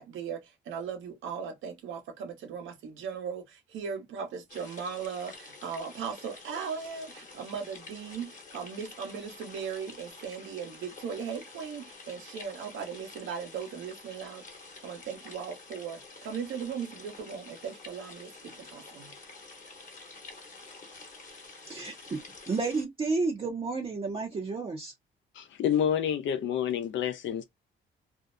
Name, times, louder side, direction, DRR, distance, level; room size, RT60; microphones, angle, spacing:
voice 1, 0.0-19.1, right 6 dB, 80° right, 0.9 m, -38 dB
sound 1, 4.5-22.8, left 3 dB, 40° left, 1.0 m, -49 dB
voice 2, 21.6-22.2 22.5-24.9, right 4 dB, 30° right, 0.6 m, -31 dB
voice 3, 25.4-27.4, left 9 dB, 70° left, 0.7 m, -28 dB
2.6 x 2.1 x 2.5 m
cardioid pair, 90°, 20 cm